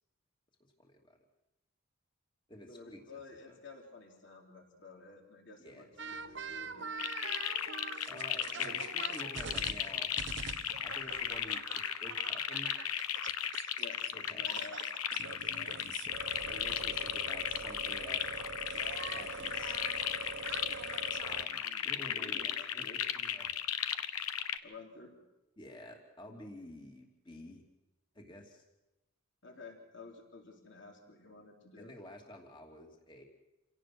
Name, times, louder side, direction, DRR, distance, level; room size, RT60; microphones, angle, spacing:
voice 1, 0.8-1.2 2.5-3.2 3.5-3.6 5.6-5.9 8.1-10.1 10.8-11.6 12.0-12.7 14.1-14.5 16.4-18.2 19.0-19.8 21.2-23.5 25.6-27.6 28.1-28.6 31.8-33.2, left 1 dB, 20° left, 1 dB, 2.8 m, -50 dB
voice 2, 2.7-6.9 13.8-14.8 15.1-15.8 21.6-23.0 24.6-25.1 29.4-31.9, left 3 dB, 55° left, 1 dB, 3.8 m, -52 dB
sound 1, 6.0-14.1 14.4-21.5, right 5 dB, 55° right, 0.9 m, -44 dB
sound 2, 7.0-24.6, left 10 dB, 85° left, 1.1 m, -36 dB
28.5 x 17.5 x 6.1 m, 1.0 s
head